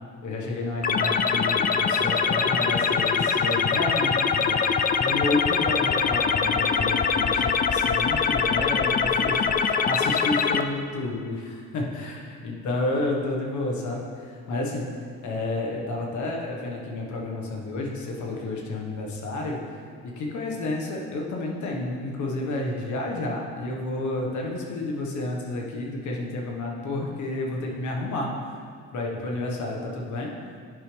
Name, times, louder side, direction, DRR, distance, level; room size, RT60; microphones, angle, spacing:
voice 1, 0.2-4.6 5.0-12.1 12.4-14.9 15.2-28.4 28.9-30.3, left 2 dB, 75° left, -1 dB, 1.5 m, -30 dB
sound 1, 0.8-10.6, left 6 dB, 30° left, 0.4 m, -23 dB
11.0 x 5.0 x 3.4 m, 2.2 s
cardioid pair, 90°, 30 cm